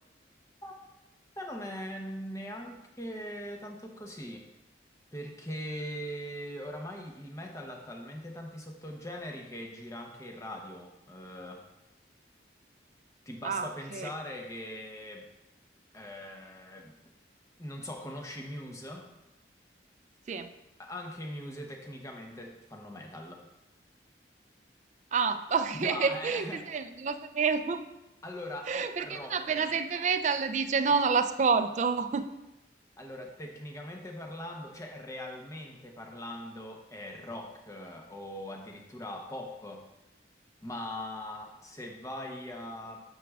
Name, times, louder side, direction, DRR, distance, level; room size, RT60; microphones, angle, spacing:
voice 1, 1.4-4.4 5.1-11.6 13.3-15.3 15.9-17.0 17.6-19.1 20.8-23.4 25.7-26.6 28.2-29.7 33.0-39.8 40.6-43.0, left 1 dB, 15° left, 1 dB, 0.7 m, -41 dB
voice 2, 13.4-14.1 20.3-20.5 25.1-27.8 28.7-32.3, right 5 dB, 40° right, 9 dB, 0.3 m, -28 dB
9.2 x 6.1 x 2.4 m, 0.95 s
head